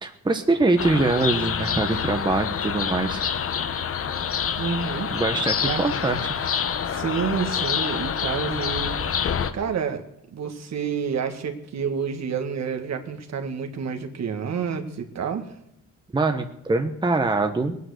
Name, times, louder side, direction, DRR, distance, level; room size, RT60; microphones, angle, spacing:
voice 1, 0.0-3.2 5.1-6.4 16.1-17.8, right 3 dB, 15° right, 5 dB, 1.1 m, -23 dB
sound 1, 0.8-9.5, left 7 dB, 45° left, 0.9 m, -27 dB
voice 2, 4.6-5.2 5.6-5.8 6.9-9.0 9.5-10.0 10.3-15.5, right 6 dB, 55° right, 5 dB, 1.8 m, -29 dB
20.5 x 9.4 x 6.5 m, 0.76 s
cardioid pair, 115°, 32 cm